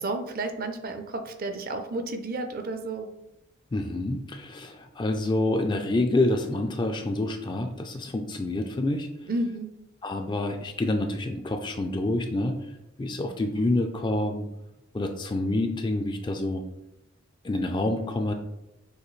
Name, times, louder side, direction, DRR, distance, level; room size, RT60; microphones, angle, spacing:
voice 1, 0.0-3.1 9.3-9.8, right 2 dB, 40° right, 6 dB, 0.5 m, -31 dB
voice 2, 3.7-9.1 10.0-12.7 13.0-14.5 14.9-16.6 17.4-18.3, left 2 dB, 20° left, 5 dB, 0.3 m, -27 dB
6.5 x 2.6 x 3.1 m, 0.89 s
head